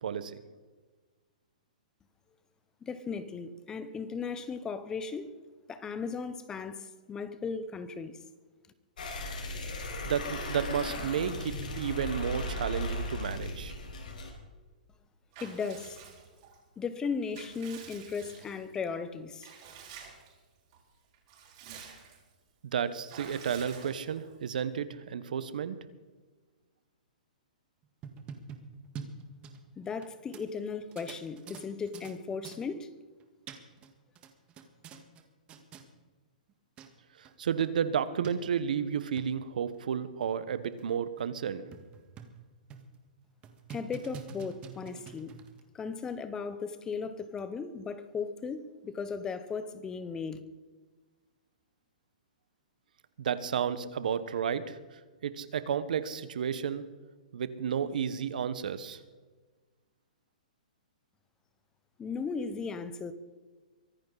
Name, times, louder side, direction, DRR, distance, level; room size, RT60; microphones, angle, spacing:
voice 1, 0.0-0.4 10.0-13.7 22.6-25.8 37.2-41.6 53.2-54.8 55.2-56.8 57.3-59.0, right 8 dB, 70° right, 1.3 m, -32 dB
voice 2, 2.8-5.3 5.7-8.2 15.4-16.0 16.8-19.5 29.8-32.9 43.7-45.3 45.7-50.4 62.0-63.1, left 5 dB, 15° left, 0.9 m, -36 dB
sound 1, 9.0-14.3, left 1 dB, 75° left, 4.8 m, -36 dB
Water / Bathtub (filling or washing) / Liquid, 15.3-16.6 17.0-18.8 19.4-20.4 20.7-20.8 21.1-22.3 23.1-24.3, right 7 dB, 40° right, 5.7 m, -49 dB
sound 2, 27.8-30.1 30.3-30.4 30.9-32.1 32.4-32.6 33.2-33.9 34.2-35.2 35.5-35.8 36.5-36.6 36.8-36.9 37.2-37.3 37.6-37.7 38.2-38.3 38.9-39.3 39.8-39.9 40.2-40.3 40.8-40.9 41.2-41.3 41.7-42.4 42.7-43.0 43.4-45.6, right 6 dB, 25° right, 1.7 m, -46 dB
24.0 x 10.5 x 4.1 m
hypercardioid pair, 150°, 5 cm